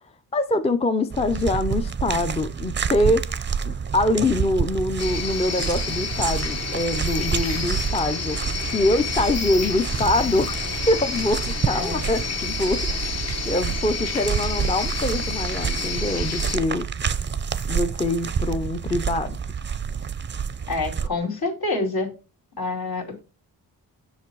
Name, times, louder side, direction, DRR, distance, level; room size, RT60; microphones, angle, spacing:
voice 1, 0.3-3.2 3.6-8.4 8.7-13.2 13.4-16.9 17.7-19.4, left 2 dB, 15° left, 0.5 m, -24 dB
sound 1, 1.1-21.1, right 7 dB, 30° right, 0.5 m, -28 dB
sound 2, 5.0-16.6, left 5 dB, 40° left, 1.1 m, -30 dB
voice 2, 11.7-12.0 20.7-22.1 22.6-23.2, left 3 dB, 70° left, 2.6 m, -27 dB
7.2 x 6.1 x 4.6 m
wide cardioid pair, 115°, 38 cm